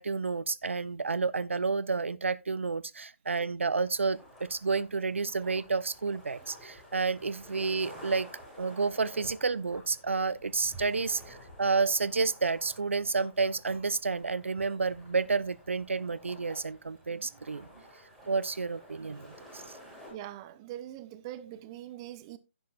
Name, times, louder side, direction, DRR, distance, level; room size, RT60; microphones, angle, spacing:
voice 1, 0.0-8.3 8.6-17.7 18.3-19.6, right 4 dB, 65° right, 0.5 m, -30 dB
sound 1, 3.8-20.1, equal, ahead, 5.2 m, -52 dB
voice 2, 20.1-22.4, right 12 dB, 20° right, 0.6 m, -42 dB
10.5 x 10.5 x 2.5 m
figure-of-eight pair, 140°, 7 cm